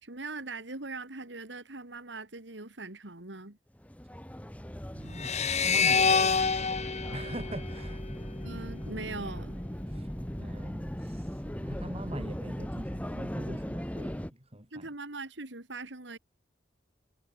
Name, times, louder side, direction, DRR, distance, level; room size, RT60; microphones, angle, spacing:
voice 1, 0.0-3.6 8.4-9.6 14.7-16.2, right 3 dB, 75° right, 2.8 m, -41 dB
sound 1, 3.8-14.3, equal, 10° left, 1.8 m, -38 dB
voice 2, 4.9-6.8 7.1-8.0 9.9-10.1 10.3-14.9, right 1 dB, 35° right, 5.8 m, -43 dB
sound 2, 5.2-8.5, left 5 dB, 40° left, 1.8 m, -27 dB
head